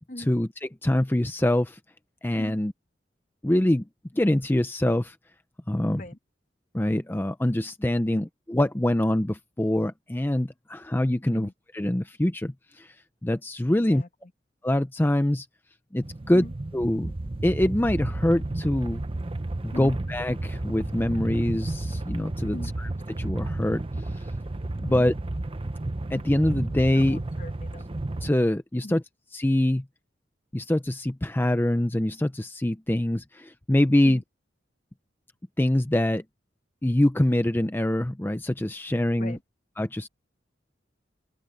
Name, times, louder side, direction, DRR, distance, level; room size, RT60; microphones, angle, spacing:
voice 1, 0.2-1.8 2.2-2.7 3.4-3.8 4.1-5.2 5.7-6.0 6.7-11.5 11.7-12.9 13.2-14.0 14.6-15.5 15.9-16.5 16.7-17.1 17.4-19.0 19.6-22.9 23.2-24.3 24.8-25.1 26.1-27.2 28.2-29.0 29.3-29.8 30.5-34.2 35.6-36.2 36.8-39.4 39.8-40.1, left 1 dB, 10° left, 0.6 m, -24 dB
voice 2, 13.9-14.3 16.3-16.5 19.7-20.0 22.5-22.7 26.9-27.9 28.8-29.0 34.0-34.2 39.2-39.4, left 1 dB, 45° left, 1.6 m, -40 dB
sound 1, 16.0-28.3, right 2 dB, 30° right, 0.7 m, -32 dB
open air
head